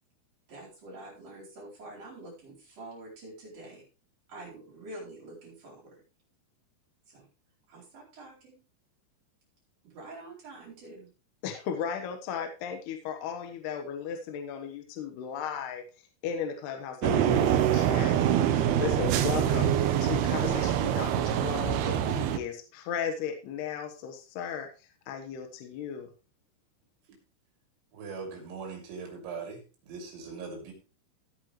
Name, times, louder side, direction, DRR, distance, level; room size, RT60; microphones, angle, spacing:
voice 1, 0.5-3.9 4.3-6.0 7.1-7.3 7.7-8.6 9.8-11.1, right 2 dB, 45° right, -5 dB, 5.9 m, -46 dB
voice 2, 11.4-15.8 16.2-24.7 25.1-26.1, left 7 dB, 70° left, 5 dB, 2.8 m, -36 dB
sound 1, 17.0-22.4, right 10 dB, 85° right, 2.2 m, -25 dB
voice 3, 27.9-30.7, right 5 dB, 60° right, 2 dB, 5.0 m, -40 dB
16.0 x 8.7 x 3.2 m, 0.32 s
omnidirectional pair, 6.0 m